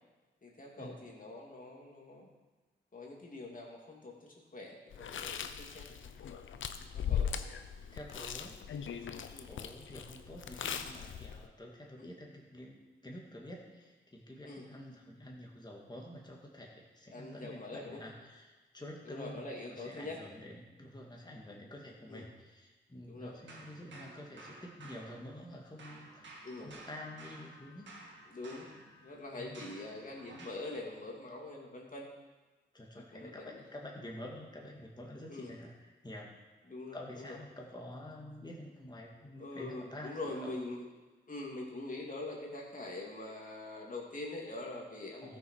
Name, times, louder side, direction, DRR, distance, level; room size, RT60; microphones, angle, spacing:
voice 1, 0.4-2.3 2.9-6.1 6.9-7.3 9.3-9.5 12.0-12.1 14.5-14.7 17.1-18.0 19.0-20.2 22.1-22.2 23.1-23.4 26.4-26.8 28.3-28.7 29.0-32.1 33.1-33.5 35.3-35.5 36.7-37.3 39.4-40.8 41.3-45.4, left 2 dB, 45° left, -2 dB, 2.7 m, -44 dB
Chewing mastication, 4.9-11.5, left 8 dB, 80° left, 0.6 m, -39 dB
voice 2, 6.7-7.1 7.9-12.8 13.0-27.9 29.3-29.6 32.7-36.3 36.9-40.5 45.2-45.4, left 1 dB, 20° left, -1 dB, 2.0 m, -48 dB
sound 1, 23.5-25.5 25.8-30.7, right 2 dB, 70° right, 2.0 m, -53 dB
13.5 x 6.5 x 4.7 m, 1.2 s
cardioid pair, 60°, 20 cm